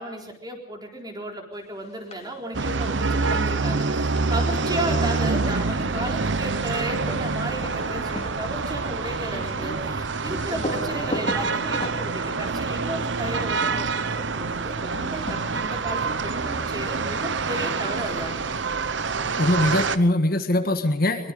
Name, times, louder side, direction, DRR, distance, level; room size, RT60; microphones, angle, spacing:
voice 1, 0.0-18.5, right 1 dB, 20° right, 1 dB, 4.2 m, -34 dB
sound 1, 1.8-2.4 2.6-13.7 14.9-16.1, left 1 dB, 35° left, 3.0 m, -38 dB
sound 2, 2.5-20.0, right 4 dB, 70° right, 1.0 m, -26 dB
voice 2, 19.4-21.3, left 1 dB, 55° left, 7 dB, 1.6 m, -22 dB
23.0 x 22.5 x 5.2 m, 0.76 s
head